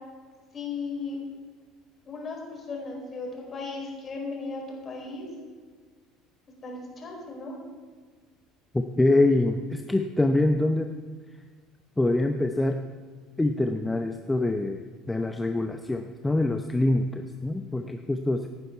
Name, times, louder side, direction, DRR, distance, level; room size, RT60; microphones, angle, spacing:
voice 1, 0.5-1.2 2.1-5.3 6.6-7.6 17.8-17.9, left 3 dB, 35° left, 0 dB, 4.8 m, -36 dB
voice 2, 8.7-10.9 12.0-12.8 13.4-14.8 15.1-18.5, left 2 dB, 10° left, 6 dB, 0.8 m, -25 dB
17.0 x 9.7 x 4.6 m, 1.5 s
hypercardioid pair, 65°, 0 cm